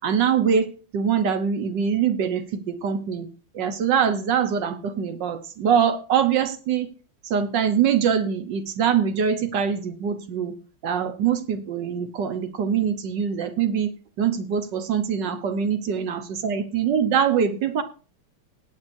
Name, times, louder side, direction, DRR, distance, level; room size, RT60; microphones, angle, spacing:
voice 1, 0.0-3.3 3.5-6.9 7.2-10.5 10.8-13.9 14.2-17.8, right 7 dB, 60° right, 9 dB, 1.5 m, -23 dB
19.0 x 8.7 x 2.6 m, 0.37 s
omnidirectional pair, 2.4 m